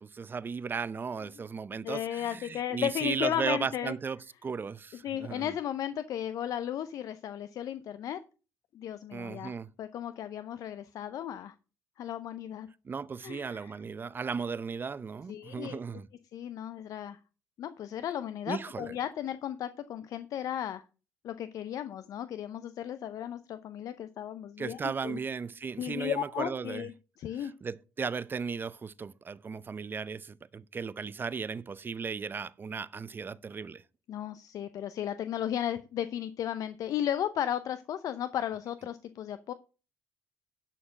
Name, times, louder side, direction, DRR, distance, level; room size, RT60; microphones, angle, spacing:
voice 1, 0.0-5.5 9.1-9.7 12.8-16.1 18.5-18.9 24.6-26.9 27.4-33.8, right 5 dB, 30° right, 0.7 m, -36 dB
voice 2, 1.8-3.9 5.0-8.2 8.7-11.5 12.0-12.7 13.2-13.8 15.3-15.8 16.3-17.2 17.6-20.8 21.2-25.2 25.8-27.5 34.1-39.5, left 10 dB, 60° left, 0.6 m, -35 dB
11.5 x 4.4 x 6.4 m
supercardioid pair, 75°, 7 cm